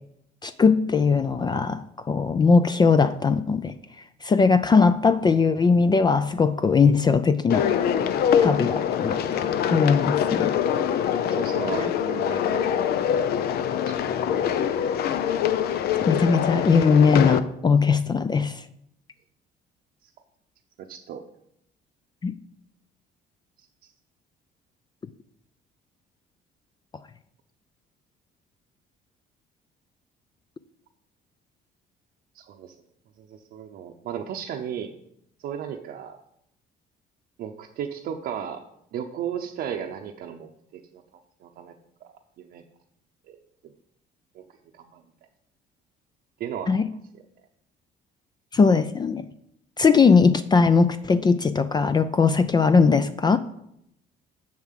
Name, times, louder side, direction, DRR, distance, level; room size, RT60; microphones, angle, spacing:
voice 1, 0.4-3.7 4.2-7.7 8.4-9.4 9.7-10.5 16.0-18.6 22.2-22.3 46.7-46.9 48.5-49.2 49.8-53.4, left 5 dB, 25° left, 11 dB, 0.4 m, -20 dB
sound 1, 7.5-17.4, left 9 dB, 65° left, 0.7 m, -24 dB
voice 2, 11.3-12.9 13.6-14.3 20.8-21.2 23.6-23.9 32.3-32.7 33.2-34.9 35.4-36.2 37.4-38.6 38.9-41.0 41.4-41.7 42.0-42.1 42.4-42.6 43.3-43.4 44.3-44.4 44.8-45.0 46.4-46.8 47.1-47.2, right 8 dB, 65° right, 1 dB, 0.8 m, -35 dB
7.3 x 6.0 x 7.5 m, 0.76 s
cardioid pair, 110°, 17 cm